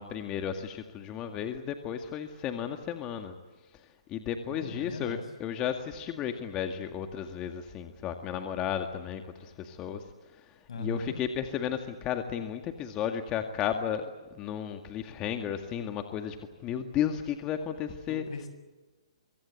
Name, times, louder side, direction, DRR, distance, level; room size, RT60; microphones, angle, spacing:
voice 1, 0.0-3.4 4.1-10.0 10.3-16.4 16.6-18.2, left 9 dB, 25° left, 6 dB, 2.0 m, -34 dB
voice 2, 4.5-5.3 10.7-11.2 18.1-18.5, left 3 dB, 70° left, 9 dB, 7.0 m, -39 dB
24.5 x 24.0 x 8.4 m, 1.2 s
hypercardioid pair, 145°, 3 cm